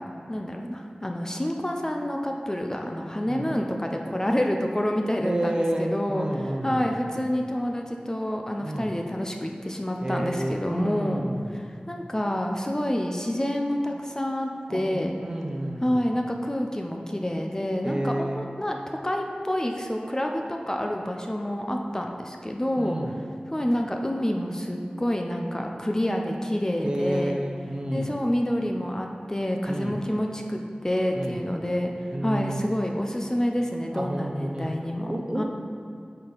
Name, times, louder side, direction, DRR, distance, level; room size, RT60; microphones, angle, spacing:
voice 1, 0.3-6.3 6.6-11.2 11.5-15.1 15.8-23.0 23.5-27.3 27.9-31.9 32.2-35.4, equal, 20° left, 2 dB, 0.5 m, -28 dB
voice 2, 5.2-6.9 8.6-8.9 10.0-11.5 14.7-16.1 17.8-18.5 22.8-23.2 26.8-28.2 29.7-30.0 31.1-31.5 32.1-32.8 33.9-34.7 35.0-35.4, right 1 dB, 30° right, 1 dB, 0.6 m, -30 dB
6.8 x 4.3 x 3.9 m, 2.3 s
wide cardioid pair, 60°, 3 cm